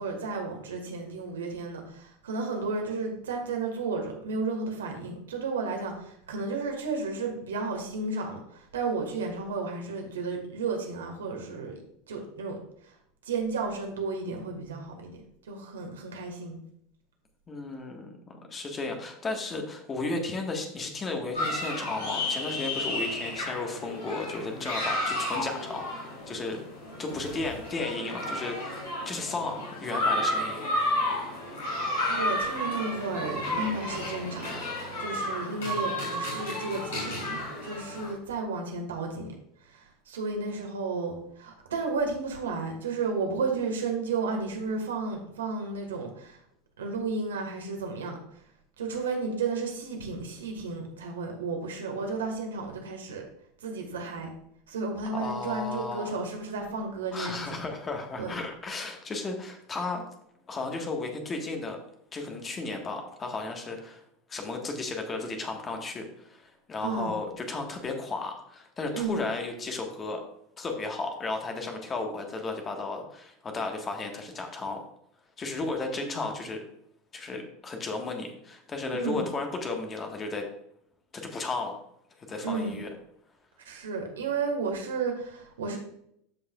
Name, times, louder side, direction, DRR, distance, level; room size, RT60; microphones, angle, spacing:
voice 1, 0.0-11.7 12.1-12.6 12.8-12.9 13.2-15.2 15.5-16.6 32.1-34.5 35.0-39.3 39.7-46.4 46.8-48.2 48.8-53.2 53.6-54.3 54.7-57.6 58.2-58.3 66.8-67.1 68.9-69.2 78.9-79.2 82.4-82.7 83.6-85.8, right 4 dB, 70° right, 2 dB, 1.8 m, -33 dB
voice 2, 17.5-26.6 27.0-30.6 55.1-56.1 57.1-60.0 60.5-61.8 62.1-64.0 64.3-70.2 70.6-74.8 75.4-76.6 77.1-80.5 81.1-81.8 82.2-82.9, left 3 dB, 25° left, 3 dB, 1.5 m, -34 dB
sound 1, 21.3-38.1, left 1 dB, 65° left, 3.4 m, -32 dB
13.5 x 5.5 x 2.4 m, 0.72 s
figure-of-eight pair, 80°, 0 cm